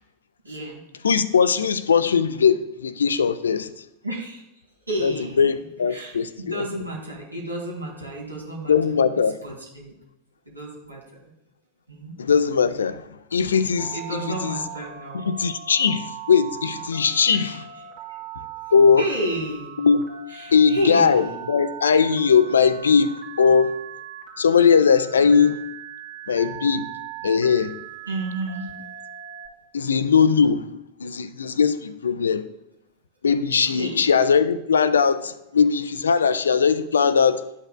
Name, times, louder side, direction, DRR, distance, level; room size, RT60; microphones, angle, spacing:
voice 1, 0.4-0.8 4.0-4.4 4.9-5.4 5.9-9.0 9.4-9.9 10.5-11.0 11.9-12.2 13.9-15.3 17.3-17.6 18.0-18.2 19.0-19.7 20.3-21.4 28.1-28.7 33.7-34.0, right 1 dB, 80° right, 2.1 m, -31 dB
voice 2, 1.0-3.7 5.0-6.7 8.7-9.4 12.2-14.6 15.1-17.7 18.7-19.1 19.8-20.0 20.5-23.7 24.4-25.6 26.3-26.9 27.2-27.8 29.7-30.7 31.0-32.5 33.2-37.4, left 6 dB, 70° left, 0.4 m, -20 dB
Telephone, 13.8-29.5, right 10 dB, 45° right, 1.7 m, -39 dB
11.5 x 5.5 x 2.2 m
figure-of-eight pair, 90°, 0 cm